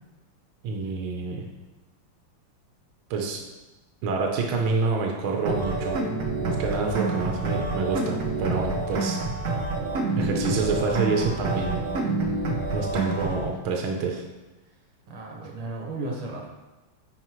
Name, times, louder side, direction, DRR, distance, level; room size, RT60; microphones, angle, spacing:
voice 1, 0.6-1.5 3.1-3.4 4.0-6.0 6.4-9.2 10.1-11.8 12.7-14.2, right 4 dB, 75° right, 1 dB, 1.6 m, -27 dB
sound 1, 5.5-13.5, right 2 dB, 55° right, 0.9 m, -28 dB
voice 2, 15.1-16.5, right 2 dB, 90° right, -1 dB, 2.2 m, -34 dB
9.7 x 4.5 x 3.1 m, 1.1 s
omnidirectional pair, 2.4 m